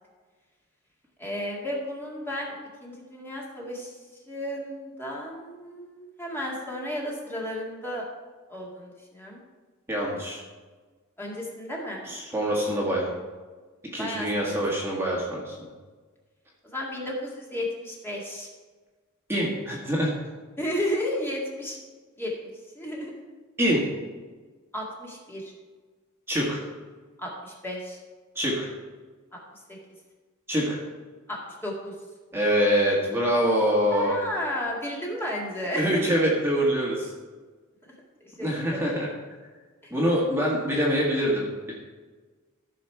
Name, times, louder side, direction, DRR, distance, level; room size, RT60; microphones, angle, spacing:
voice 1, 1.2-2.6 2.8-8.0 8.5-9.4 11.2-12.1 14.0-14.6 16.6-18.5 20.6-21.8 22.2-23.1 24.7-25.5 27.2-28.0 29.3-29.4 31.3-31.9 33.9-36.2 38.2-39.0, equal, 10° left, -3 dB, 2.1 m, -33 dB
voice 2, 9.9-10.4 12.1-13.1 13.9-15.6 19.3-20.1 23.6-23.9 26.3-26.6 28.4-28.7 30.5-30.8 32.3-34.2 35.7-37.1 38.4-39.1 39.9-41.7, equal, 10° right, -4 dB, 1.8 m, -25 dB
14.5 x 6.4 x 4.7 m, 1.4 s
head